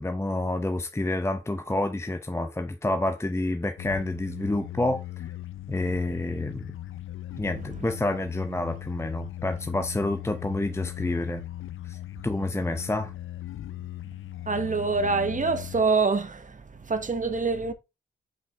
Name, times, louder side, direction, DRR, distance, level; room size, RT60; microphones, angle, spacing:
voice 1, 0.0-5.3 5.7-6.7 7.4-11.4 11.9-12.0 12.2-13.1, left 2 dB, 10° left, 0.7 m, -28 dB
sound 1, 3.8-15.8, left 13 dB, 75° left, 0.5 m, -38 dB
voice 2, 14.5-17.7, right 4 dB, 40° right, 1.2 m, -26 dB
5.6 x 4.9 x 3.4 m
supercardioid pair, 45°, 21 cm